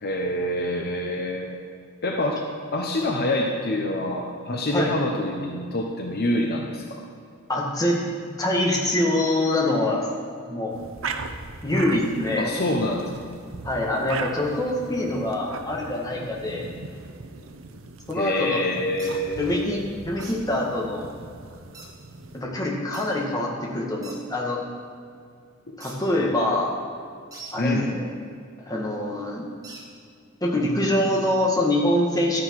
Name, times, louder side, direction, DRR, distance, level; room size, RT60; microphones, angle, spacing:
voice 1, 0.0-1.6 2.0-2.4 2.7-7.0 12.4-13.1 18.1-19.7 27.6-27.9, left 1 dB, 50° left, 1 dB, 0.9 m, -26 dB
voice 2, 7.5-8.1 8.4-10.1 10.5-10.8 11.6-12.5 13.6-16.7 18.1-18.6 19.4-21.1 22.3-24.6 25.8-26.7 27.5-28.1 28.7-29.5 30.4-32.4, left 1 dB, 20° left, -2 dB, 1.8 m, -24 dB
sound 1, 10.7-22.4, right 4 dB, 80° right, 0.8 m, -39 dB
sound 2, 19.0-19.1 20.2-20.4 21.7-21.9 22.9-23.1 24.0-24.2 25.8-26.0 27.3-27.6 29.6-29.8, right 3 dB, 20° right, 1.7 m, -42 dB
12.5 x 9.4 x 4.8 m, 2.3 s
head